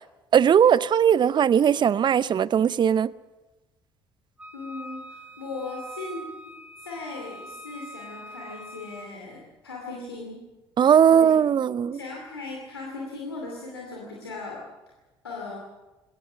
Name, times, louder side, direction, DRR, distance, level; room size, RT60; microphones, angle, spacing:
voice 1, 0.3-3.1 10.8-12.0, right 8 dB, 40° right, 0.6 m, -19 dB
Wind instrument woodwind instrument, 4.4-9.1, right 1 dB, 10° right, 2.7 m, -43 dB
voice 2, 4.5-6.2 6.8-10.4 11.1-11.4 11.9-14.6 15.2-15.6, left 3 dB, 85° left, 2.5 m, -38 dB
21.5 x 17.5 x 8.1 m
figure-of-eight pair, 50°, 13 cm